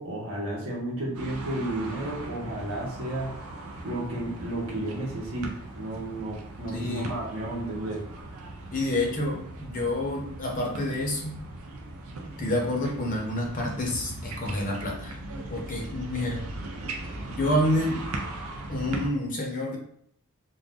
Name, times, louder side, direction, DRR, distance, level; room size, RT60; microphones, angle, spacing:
voice 1, 0.0-3.3 3.8-8.0, right 1 dB, 60° right, -3 dB, 0.9 m, -32 dB
night basketball, 1.1-19.1, right 2 dB, 75° right, 0.5 m, -39 dB
voice 2, 6.7-7.1 8.7-11.4 12.4-15.2 15.5-16.5 17.3-18.1 18.7-19.8, left 1 dB, 35° left, -1 dB, 0.7 m, -28 dB
2.5 x 2.4 x 3.5 m, 0.67 s
head